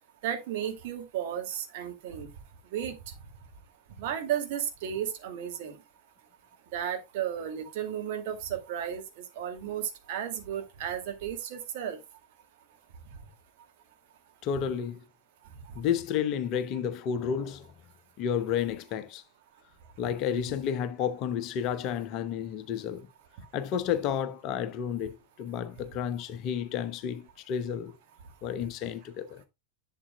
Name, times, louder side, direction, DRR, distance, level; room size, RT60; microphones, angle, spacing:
voice 1, 0.2-2.3 2.7-2.9 4.0-5.8 6.7-9.0 9.4-12.0, right 9 dB, 50° right, 2.2 m, -33 dB
voice 2, 14.4-15.0 15.7-17.7 18.2-19.2 20.0-23.1 23.5-27.9 28.4-29.4, left 8 dB, 40° left, 0.8 m, -31 dB
11.0 x 7.5 x 2.2 m
figure-of-eight pair, 90°, 0 cm